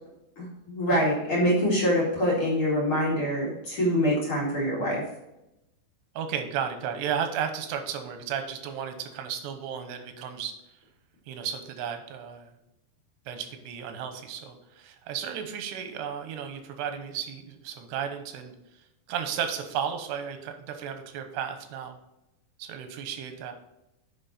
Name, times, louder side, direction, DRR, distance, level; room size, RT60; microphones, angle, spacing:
voice 1, 0.4-5.0, equal, 35° left, -5 dB, 2.6 m, -25 dB
voice 2, 6.2-10.5 11.3-12.5 13.3-18.5 19.1-22.0 22.6-23.5, right 8 dB, 85° right, 7 dB, 3.1 m, -34 dB
9.5 x 5.4 x 4.2 m, 0.89 s
omnidirectional pair, 4.7 m